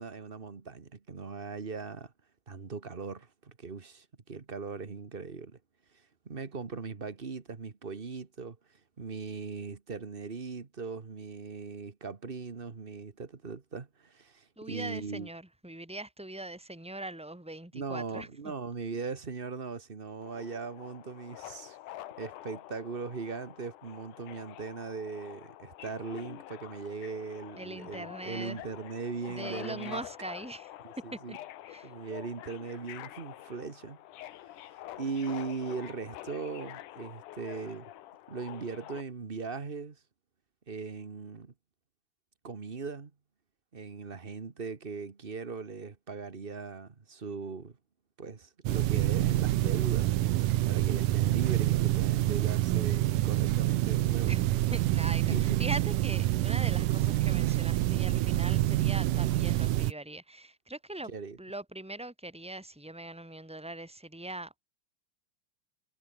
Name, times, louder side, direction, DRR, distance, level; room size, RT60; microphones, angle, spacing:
voice 1, 0.0-2.1 2.5-5.6 5.9-15.3 17.7-21.8 22.2-30.0 30.8-31.4 31.8-34.0 34.7-37.9 38.3-40.0 40.7-41.5 42.4-43.1 43.7-47.8 48.2-50.3 50.6-54.3 55.3-55.7 61.1-61.4, right 4 dB, 55° right, 0.6 m, -39 dB
voice 2, 14.6-18.5 27.6-28.6 29.3-30.7 31.1-31.4 31.7-31.9 54.3-61.1 61.4-64.6, right 1 dB, 5° right, 0.5 m, -41 dB
Subway metro underground, 20.2-39.0, left 14 dB, 80° left, 2.6 m, -47 dB
sound 1, 48.7-59.9, right 15 dB, 85° right, 2.5 m, -27 dB
omnidirectional pair, 3.6 m